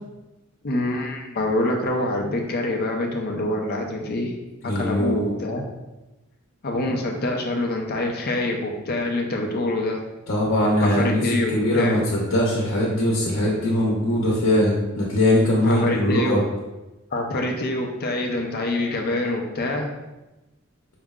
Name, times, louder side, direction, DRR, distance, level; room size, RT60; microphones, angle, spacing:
voice 1, 0.6-4.3 4.6-5.6 6.6-10.0 10.8-12.0 15.6-16.4 17.1-19.9, left 2 dB, 50° left, 1 dB, 0.6 m, -25 dB
voice 2, 4.6-5.3 10.3-11.2 11.5-16.4, left 1 dB, 85° left, -4 dB, 0.9 m, -21 dB
4.7 x 2.1 x 3.5 m, 1.0 s
head